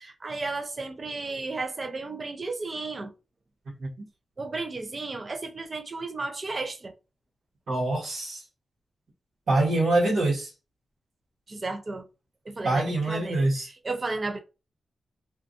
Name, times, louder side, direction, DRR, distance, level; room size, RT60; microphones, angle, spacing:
voice 1, 0.0-3.1 4.4-6.9 11.5-12.0 12.5-14.4, right 3 dB, 40° right, 0.5 m, -33 dB
voice 2, 7.7-8.4 9.5-10.5 12.6-13.7, right 2 dB, 70° right, 1.2 m, -25 dB
2.5 x 2.4 x 2.5 m
cardioid pair, 90°, 0 cm